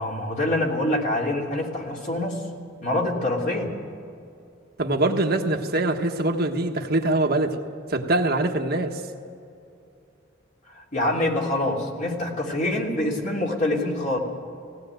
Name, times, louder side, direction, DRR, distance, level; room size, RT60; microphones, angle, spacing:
voice 1, 0.0-2.4 2.8-3.7 10.7-14.2, left 1 dB, 40° left, -1 dB, 3.3 m, -25 dB
voice 2, 4.8-7.5 7.9-8.9, right 2 dB, 50° right, 3 dB, 1.4 m, -23 dB
18.0 x 17.5 x 9.1 m, 2.5 s
head